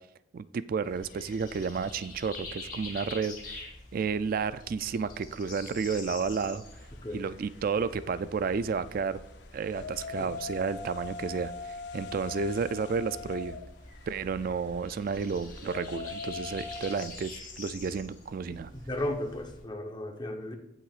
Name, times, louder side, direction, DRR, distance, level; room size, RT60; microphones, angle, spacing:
voice 1, 0.3-3.7 3.9-6.6 7.1-9.2 9.5-13.6 14.1-18.7, right 5 dB, 50° right, 15 dB, 0.3 m, -32 dB
sound 1, 0.8-19.6, left 2 dB, 45° left, 2.4 m, -46 dB
sound 2, 6.6-17.1, left 5 dB, 60° left, 0.5 m, -43 dB
voice 2, 18.5-20.6, left 1 dB, 25° left, 4 dB, 0.9 m, -35 dB
17.5 x 6.0 x 2.4 m, 0.87 s
head